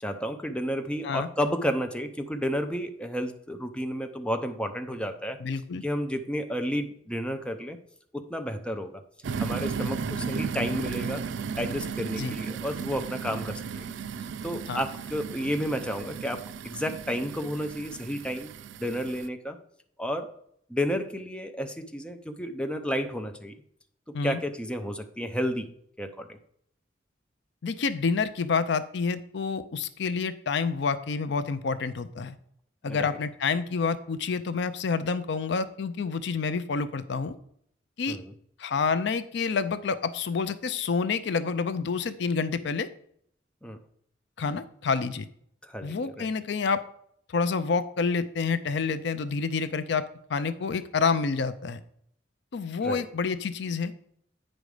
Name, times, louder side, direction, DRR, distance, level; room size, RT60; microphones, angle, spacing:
voice 1, 0.0-5.4 5.8-7.8 8.1-9.0 9.4-11.2 11.5-13.9 14.4-18.5 18.8-19.6 20.0-20.3 20.7-23.5 24.2-25.7 26.0-26.4 32.8-33.2 38.1-38.3 43.6-43.8 45.6-46.3 52.8-53.1, equal, 5° left, 6 dB, 0.6 m, -31 dB
voice 2, 5.4-5.8 12.2-12.4 14.7-14.8 24.1-24.4 27.6-32.4 32.8-37.3 38.0-38.2 38.6-42.9 44.4-45.3 45.8-46.8 47.3-51.8 52.5-53.9, left 5 dB, 65° left, 13 dB, 0.5 m, -28 dB
sound 1, 9.2-19.3, right 6 dB, 70° right, 0.4 m, -35 dB
8.8 x 5.2 x 4.8 m, 0.68 s
head